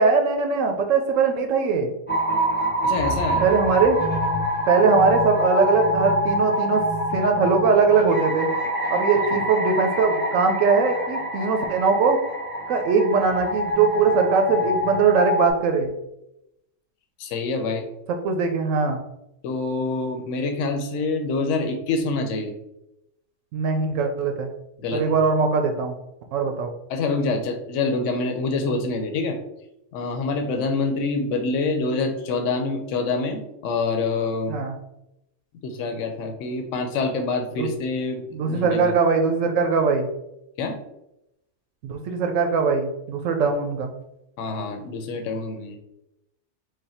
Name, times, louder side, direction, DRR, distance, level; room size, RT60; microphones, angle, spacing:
voice 1, 0.0-1.9 3.4-4.0 4.7-6.8 7.1-8.5 8.9-12.2 12.7-15.9 18.2-19.0 23.5-24.5 24.9-26.0 26.3-26.7 34.5-34.7 37.6-37.7 38.3-40.1 41.8-43.9, right 5 dB, 85° right, 4 dB, 1.0 m, -21 dB
sound 1, 2.1-15.5, equal, 10° left, 0.6 m, -25 dB
voice 2, 2.8-3.5 17.2-17.9 19.4-22.5 24.8-25.1 26.9-29.4 29.9-34.6 35.6-38.9 40.6-40.8 44.4-45.8, left 3 dB, 80° left, 4 dB, 1.0 m, -26 dB
5.0 x 2.2 x 4.2 m, 0.86 s
omnidirectional pair, 1.3 m